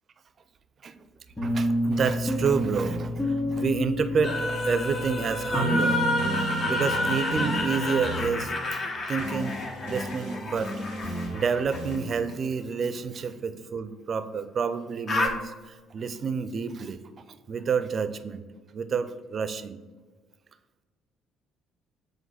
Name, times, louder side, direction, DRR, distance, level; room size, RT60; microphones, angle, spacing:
sound 1, 1.4-8.4, equal, 20° left, 1.8 m, -30 dB
voice 1, 1.4-8.8 9.1-9.5 9.9-10.7 11.1-17.0 17.3-18.4 18.7-19.8, right 5 dB, 45° right, 11 dB, 0.5 m, -29 dB
sound 2, 4.2-12.2 15.1-15.3, left 2 dB, 45° left, 0.9 m, -29 dB
sound 3, 5.8-13.7, equal, 80° left, 2.0 m, -37 dB
7.6 x 2.6 x 5.8 m, 1.4 s
figure-of-eight pair, 50°, 0 cm